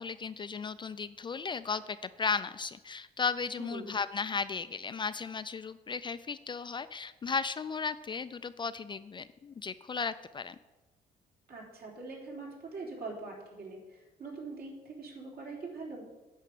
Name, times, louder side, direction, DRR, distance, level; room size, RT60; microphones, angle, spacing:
voice 1, 0.0-10.6, left 5 dB, 30° left, 13 dB, 0.3 m, -35 dB
voice 2, 3.6-3.9 11.5-16.0, right 3 dB, 65° right, -3 dB, 3.7 m, -43 dB
9.7 x 5.6 x 8.4 m, 1.1 s
cardioid pair, 115°, 17 cm